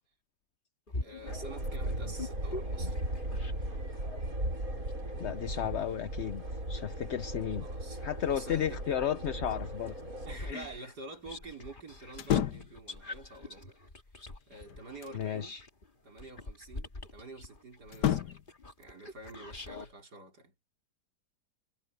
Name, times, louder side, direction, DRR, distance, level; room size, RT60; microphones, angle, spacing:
sound 1, 0.9-3.9 4.4-8.8 9.2-19.9, left 2 dB, 30° left, 2.3 m, -45 dB
voice 1, 1.0-3.0 7.6-8.0 8.3-8.8 10.2-13.8 14.5-15.5 16.0-18.4 18.8-20.5, right 2 dB, 70° right, 5.1 m, -48 dB
sound 2, 1.3-10.4, right 1 dB, 55° right, 7.9 m, -37 dB
voice 2, 5.2-7.7 8.0-9.9 10.5-10.8 15.1-15.6, left 9 dB, 55° left, 0.9 m, -34 dB
sound 3, 12.1-12.8 14.4-15.3 17.9-18.5, left 10 dB, 85° left, 1.6 m, -31 dB
omnidirectional pair, 1.8 m